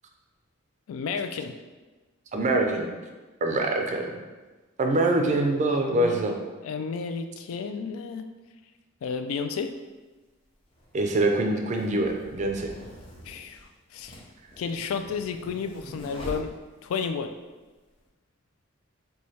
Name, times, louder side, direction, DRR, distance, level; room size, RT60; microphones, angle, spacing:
voice 1, 0.9-1.5 5.7-8.2 9.0-9.7 13.2-13.6 13.9-14.1 14.6-16.5 16.8-17.3, left 5 dB, 75° left, 9 dB, 0.3 m, -32 dB
voice 2, 2.3-2.9 3.4-4.1 4.8-6.3 10.9-12.7, right 2 dB, 35° right, 2 dB, 0.4 m, -24 dB
sound 1, 9.6-9.7 10.7-17.1, equal, 25° left, 0.6 m, -44 dB
3.1 x 2.3 x 4.1 m, 1.2 s
head